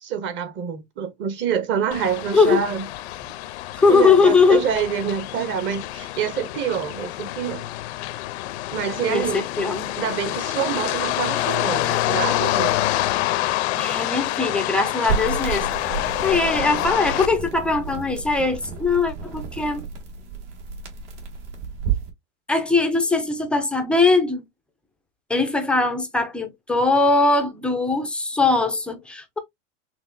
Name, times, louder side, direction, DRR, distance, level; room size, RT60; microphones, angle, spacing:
voice 1, 0.0-2.9 3.9-7.7 8.7-9.4 10.0-12.9, right 8 dB, 30° right, 0.9 m, -26 dB
sound 1, 1.9-17.3, left 16 dB, 60° left, 0.5 m, -27 dB
voice 2, 3.8-4.6 9.1-9.9 13.8-15.7 16.2-19.9 22.5-24.4 25.3-29.4, left 4 dB, 5° left, 0.3 m, -20 dB
sound 2, 15.1-22.1, right 6 dB, 65° right, 1.9 m, -31 dB
5.7 x 2.5 x 2.5 m
supercardioid pair, 135°, 37 cm